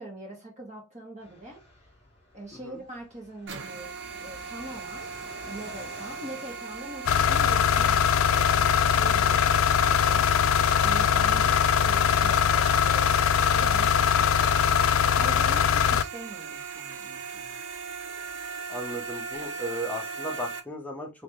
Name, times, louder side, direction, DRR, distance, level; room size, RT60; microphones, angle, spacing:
voice 1, 0.0-1.6 2.3-5.2 5.5-10.6 10.8-17.6, right 1 dB, 35° right, 1.9 m, -43 dB
Fixed-wing aircraft airplane, 1.2-19.5, left 1 dB, 30° left, 1.8 m, -53 dB
sound 1, 3.5-20.6, right 5 dB, 60° right, 0.7 m, -38 dB
sound 2, 7.1-16.0, left 8 dB, 80° left, 0.3 m, -22 dB
voice 2, 18.7-21.1, right 1 dB, 10° left, 0.8 m, -35 dB
3.7 x 3.2 x 3.5 m
head